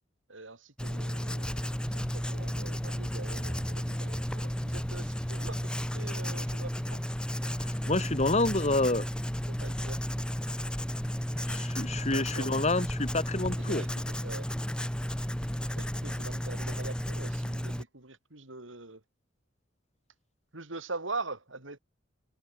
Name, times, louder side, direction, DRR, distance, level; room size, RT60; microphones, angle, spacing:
voice 1, 0.3-5.6 5.9-7.0 9.5-10.0 12.1-12.5 13.6-14.5 15.7-19.0 20.5-21.8, right 3 dB, 85° right, 4.2 m, -43 dB
Writing, 0.8-17.8, equal, 5° left, 1.4 m, -33 dB
voice 2, 7.6-9.1 11.5-13.9, left 2 dB, 35° left, 2.4 m, -28 dB
head